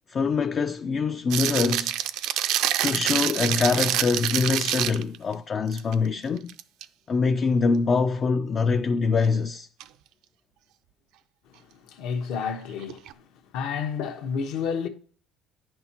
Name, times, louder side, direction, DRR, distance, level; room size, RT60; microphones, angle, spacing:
voice 1, 0.1-1.9 2.8-6.5 7.1-9.7, left 4 dB, 30° left, 0.3 m, -24 dB
sound 1, 1.3-5.2 5.7-5.9 6.4-6.8 9.8-9.9 12.8-13.1, right 12 dB, 70° right, 0.4 m, -26 dB
voice 2, 11.6-13.3 13.5-14.9, left 6 dB, 70° left, 1.1 m, -30 dB
10.0 x 6.0 x 2.8 m
cardioid pair, 140°, 0 cm